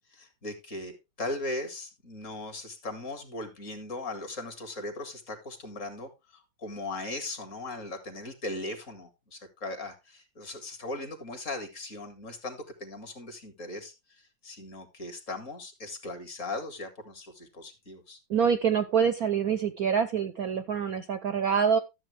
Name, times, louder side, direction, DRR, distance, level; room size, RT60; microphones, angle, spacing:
voice 1, 0.1-18.2, left 2 dB, 40° left, 6 dB, 2.1 m, -38 dB
voice 2, 18.3-21.8, right 7 dB, 65° right, 12 dB, 0.9 m, -26 dB
13.0 x 7.5 x 3.3 m, 0.24 s
omnidirectional pair, 2.2 m